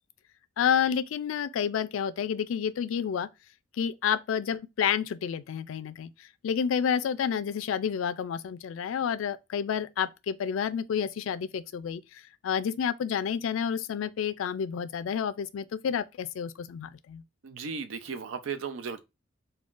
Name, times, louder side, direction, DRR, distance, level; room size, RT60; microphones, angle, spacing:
voice 1, 0.6-3.3 3.8-6.1 6.4-17.2, left 7 dB, 80° left, 0.3 m, -29 dB
voice 2, 17.4-19.1, right 5 dB, 80° right, 0.5 m, -36 dB
3.6 x 2.3 x 2.4 m
head